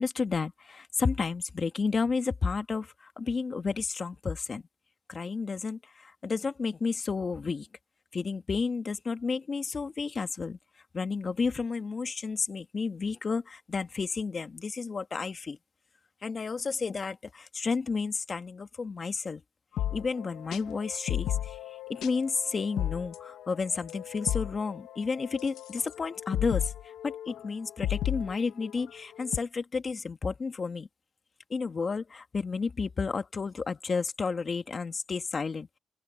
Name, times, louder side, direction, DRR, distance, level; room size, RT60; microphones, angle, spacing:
voice 1, 0.0-4.6 5.1-7.7 8.1-10.6 10.9-15.6 16.2-19.4 19.9-26.7 27.0-30.9 31.5-35.8, left 4 dB, 35° left, 1.8 m, -31 dB
sound 1, 19.8-29.4, left 12 dB, 80° left, 1.0 m, -35 dB
open air
cardioid pair, 90°, 0 cm